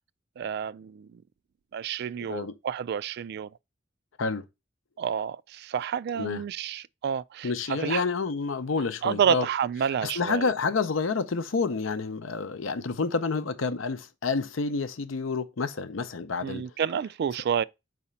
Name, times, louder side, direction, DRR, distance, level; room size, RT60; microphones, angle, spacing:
voice 1, 0.4-1.2 1.7-3.5 5.0-8.0 9.0-10.5 16.4-17.6, right 8 dB, 55° right, 0.3 m, -29 dB
voice 2, 2.2-2.5 4.2-4.5 6.1-6.4 7.4-9.5 10.0-16.7, left 4 dB, 80° left, 0.6 m, -29 dB
4.9 x 4.2 x 5.5 m
head